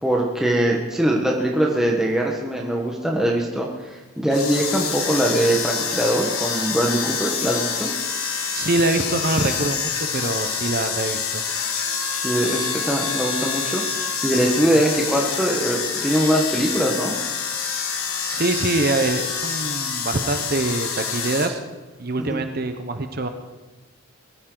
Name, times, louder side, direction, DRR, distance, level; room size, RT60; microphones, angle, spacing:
voice 1, 0.0-7.9 12.1-17.1 22.3-22.4, right 1 dB, ahead, -2 dB, 1.3 m, -22 dB
sound 1, 4.3-21.5, left 6 dB, 75° left, 1.6 m, -27 dB
voice 2, 8.5-11.4 18.3-21.6 22.0-23.3, right 2 dB, 45° right, 7 dB, 0.9 m, -24 dB
21.5 x 14.5 x 3.9 m, 1.2 s
head